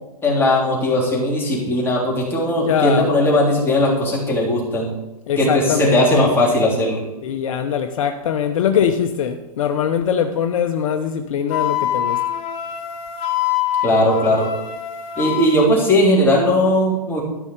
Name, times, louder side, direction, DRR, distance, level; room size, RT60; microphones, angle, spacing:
voice 1, 0.2-4.9 5.4-7.0 13.8-14.5 15.2-17.2, left 1 dB, 10° left, -3 dB, 3.4 m, -18 dB
voice 2, 2.5-3.1 5.3-6.3 7.2-12.2, left 8 dB, 55° left, 7 dB, 0.9 m, -21 dB
Wind instrument woodwind instrument, 11.5-15.7, left 11 dB, 30° left, 1.3 m, -24 dB
13.5 x 5.6 x 6.5 m, 0.99 s
hypercardioid pair, 145°, 20 cm